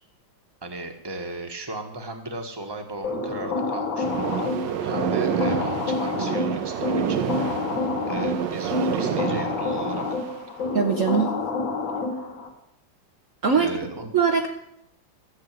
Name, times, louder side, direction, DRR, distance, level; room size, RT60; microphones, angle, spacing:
voice 1, 0.6-4.5 4.8-7.6 8.1-10.0 13.5-14.1, right 2 dB, 15° right, 5 dB, 1.5 m, -36 dB
sound 1, 3.0-12.5, left 3 dB, 75° left, 3.4 m, -28 dB
sound 2, 4.0-10.4, right 9 dB, 75° right, 1.5 m, -29 dB
voice 2, 10.7-11.3 13.4-14.5, right 6 dB, 50° right, 3 dB, 1.2 m, -22 dB
14.5 x 7.4 x 9.1 m, 0.78 s
omnidirectional pair, 2.1 m